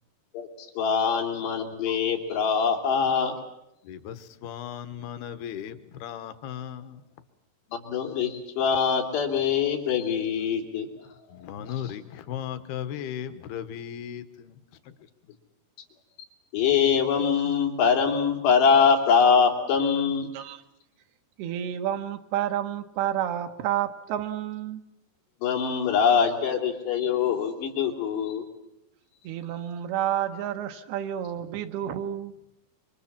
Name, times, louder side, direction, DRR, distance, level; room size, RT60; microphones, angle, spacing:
voice 1, 0.8-3.3 7.7-10.9 11.7-11.8 16.5-20.3 25.4-28.4, left 6 dB, 90° left, 1 dB, 5.2 m, -23 dB
voice 2, 3.8-7.0 11.3-14.6, left 9 dB, 75° left, 11 dB, 3.1 m, -36 dB
voice 3, 21.4-24.9 29.2-32.3, right 11 dB, 75° right, 6 dB, 3.2 m, -30 dB
27.0 x 25.0 x 7.4 m, 0.87 s
omnidirectional pair, 4.7 m